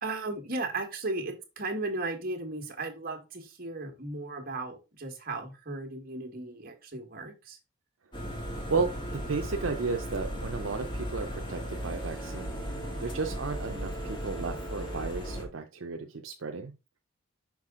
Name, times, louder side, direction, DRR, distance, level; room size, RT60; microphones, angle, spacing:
voice 1, 0.0-7.6, right 2 dB, 45° right, 4 dB, 1.5 m, -36 dB
sound 1, 8.1-15.4, equal, 25° left, 1.6 m, -36 dB
voice 2, 8.7-16.7, right 4 dB, 70° right, 4 dB, 0.6 m, -34 dB
6.1 x 4.9 x 3.7 m, 0.27 s
head